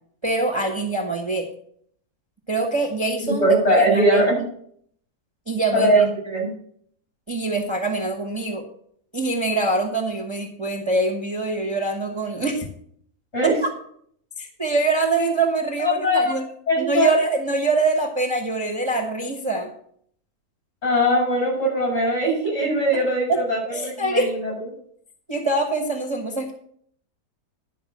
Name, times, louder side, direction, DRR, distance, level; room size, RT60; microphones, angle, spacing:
voice 1, 0.2-1.4 2.5-4.2 5.5-6.0 7.3-8.6 9.1-12.7 13.4-13.5 14.4-16.4 16.8-19.7 23.7-24.3 25.3-26.5, right 3 dB, 20° right, 3 dB, 1.2 m, -24 dB
voice 2, 3.2-4.4 5.7-6.5 13.3-13.5 15.8-16.4 16.7-17.1 20.8-24.5, equal, 45° left, -2 dB, 6.1 m, -20 dB
11.0 x 5.2 x 7.3 m, 0.64 s
omnidirectional pair, 1.6 m